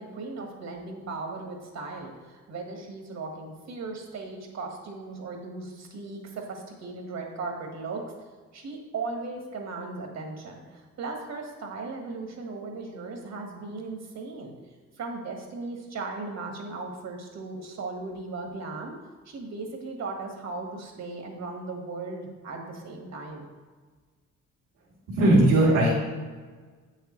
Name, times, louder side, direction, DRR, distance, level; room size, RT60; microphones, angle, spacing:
voice 1, 0.0-8.0 8.5-14.5 15.0-18.9 19.2-23.5, right 3 dB, 60° right, 2 dB, 1.7 m, -37 dB
voice 2, 25.1-25.9, right 1 dB, 85° right, -9 dB, 2.5 m, -18 dB
8.4 x 6.6 x 3.2 m, 1.4 s
cardioid pair, 90°, 30 cm